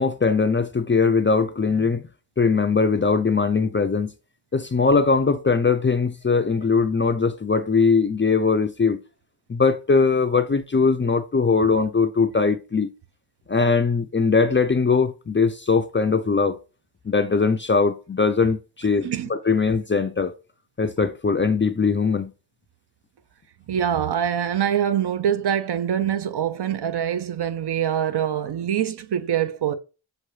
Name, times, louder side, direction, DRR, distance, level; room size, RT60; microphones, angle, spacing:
voice 1, 0.0-2.0 2.4-4.1 4.5-9.0 9.5-12.9 13.5-16.6 17.1-20.3 20.8-22.3, left 4 dB, 25° left, 0.4 m, -21 dB
voice 2, 23.7-29.7, right 9 dB, 60° right, 0.6 m, -24 dB
6.0 x 2.6 x 3.1 m
wide cardioid pair, 75°, 47 cm